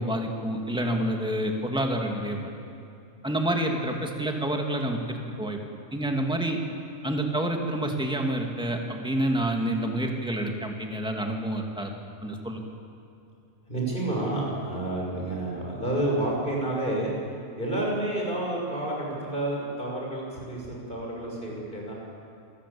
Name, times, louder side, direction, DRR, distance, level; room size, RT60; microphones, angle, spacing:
voice 1, 0.0-2.5 3.2-5.6 5.9-6.6 7.0-11.9 12.2-12.6, right 1 dB, 5° right, 2 dB, 2.3 m, -28 dB
voice 2, 13.7-17.1 17.6-21.9, right 1 dB, 35° left, -2 dB, 6.9 m, -29 dB
27.0 x 19.5 x 8.7 m, 2.6 s
omnidirectional pair, 1.4 m